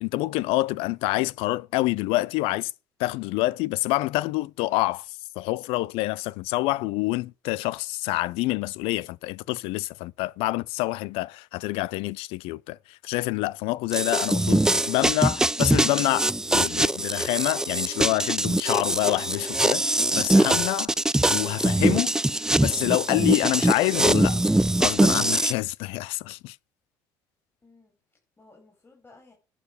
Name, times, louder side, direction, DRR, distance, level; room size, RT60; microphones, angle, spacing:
voice 1, 0.0-2.7 3.0-20.9 21.3-22.1 22.6-24.4 24.8-26.6, left 19 dB, 75° left, 0.4 m, -27 dB
sound 1, 13.9-25.5, right 1 dB, 5° right, 0.4 m, -23 dB
voice 2, 27.6-29.3, left 3 dB, 25° left, 4.5 m, -56 dB
11.0 x 4.9 x 6.7 m
supercardioid pair, 70°, 10 cm